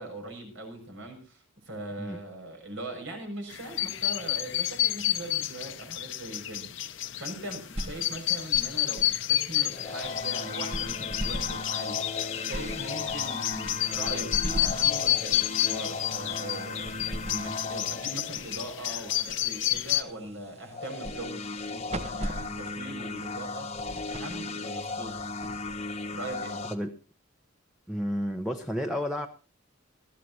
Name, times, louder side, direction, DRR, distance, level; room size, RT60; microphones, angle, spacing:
voice 1, 0.0-12.1 12.4-23.8 24.1-25.2 26.1-26.7, right 2 dB, 70° right, 4 dB, 6.2 m, -41 dB
sound 1, 3.5-20.0, left 14 dB, 65° left, 0.8 m, -30 dB
sound 2, 7.4-26.3, right 1 dB, 35° right, 1.0 m, -41 dB
sound 3, 9.7-19.2 20.7-26.8, left 3 dB, 35° left, 1.1 m, -37 dB
voice 2, 27.9-29.3, equal, ahead, 5 dB, 0.8 m, -31 dB
20.0 x 14.5 x 2.8 m, 0.34 s
head